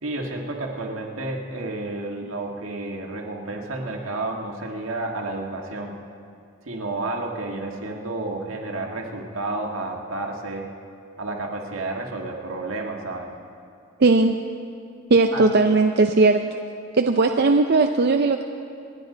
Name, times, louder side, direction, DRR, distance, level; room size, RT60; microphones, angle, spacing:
voice 1, 0.0-6.0 6.7-10.7 11.2-13.3 15.3-15.4, right 2 dB, 85° right, 0 dB, 1.9 m, -31 dB
voice 2, 14.0-14.4 15.1-16.4 16.9-18.4, right 3 dB, 50° right, 5 dB, 0.5 m, -18 dB
28.0 x 10.0 x 3.9 m, 2.5 s
head